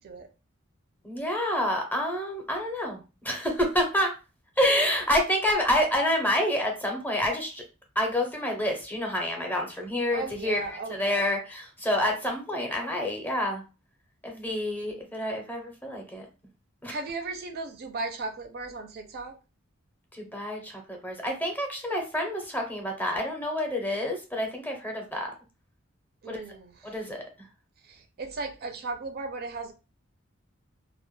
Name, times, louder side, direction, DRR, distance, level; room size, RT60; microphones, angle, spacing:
voice 1, 1.0-4.2 4.6-7.6 8.0-13.6 14.2-16.3 16.8-17.0 20.1-25.3 26.3-26.4 26.8-27.2, left 1 dB, 10° left, 1 dB, 0.6 m, -28 dB
voice 2, 10.1-11.2 16.9-19.4 26.2-26.9 27.8-29.7, right 3 dB, 50° right, 6 dB, 0.4 m, -36 dB
2.1 x 2.0 x 3.0 m, 0.30 s
head